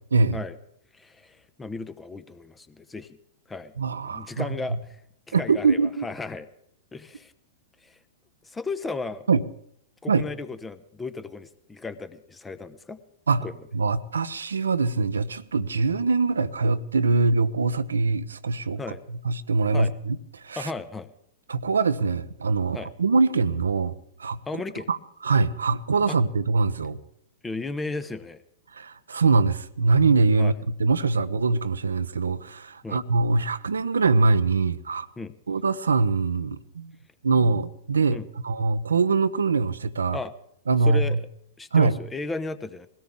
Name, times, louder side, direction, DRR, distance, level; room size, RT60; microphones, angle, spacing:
voice 1, 0.9-3.2 3.5-3.7 4.1-5.0 5.3-6.5 6.9-7.3 7.8-8.0 8.4-9.2 10.0-13.0 13.4-13.5 18.8-19.0 19.7-19.9 20.6-21.1 22.7-22.9 24.5-24.9 26.1-26.2 27.4-28.4 30.4-30.5 32.8-33.0 35.2-35.3 38.1-38.3 40.1-40.3 40.9-41.2 41.6-42.9, left 3 dB, 10° left, 13 dB, 0.9 m, -35 dB
voice 2, 3.8-4.5 5.3-6.1 9.3-9.4 10.1-10.2 13.3-18.8 19.2-20.7 21.5-23.9 24.2-24.4 24.9-25.0 25.2-27.0 28.7-35.1 35.5-36.9 37.2-38.2 38.4-40.2 40.7-41.2 41.7-42.0, right 4 dB, 75° right, 12 dB, 0.8 m, -23 dB
21.0 x 17.0 x 3.7 m, 0.71 s
figure-of-eight pair, 100°, 0 cm